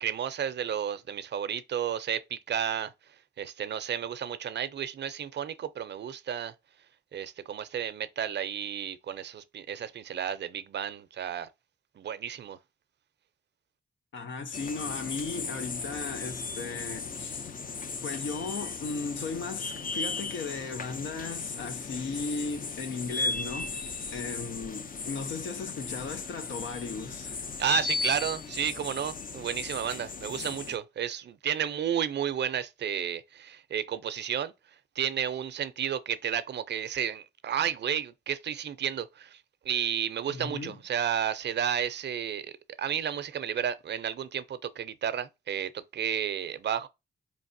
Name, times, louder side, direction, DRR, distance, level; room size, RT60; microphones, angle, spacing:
voice 1, 0.0-2.9 3.4-6.5 7.1-11.5 12.0-12.6 27.6-34.5 35.0-39.4 39.6-42.5 42.8-46.9, right 9 dB, 65° right, 0.5 m, -32 dB
voice 2, 14.1-17.5 18.0-23.8 24.1-27.4 40.3-40.8, left 4 dB, 80° left, 0.7 m, -36 dB
sound 1, 14.5-30.8, left 4 dB, 45° left, 0.6 m, -36 dB
4.1 x 3.2 x 2.6 m
cardioid pair, 75°, 19 cm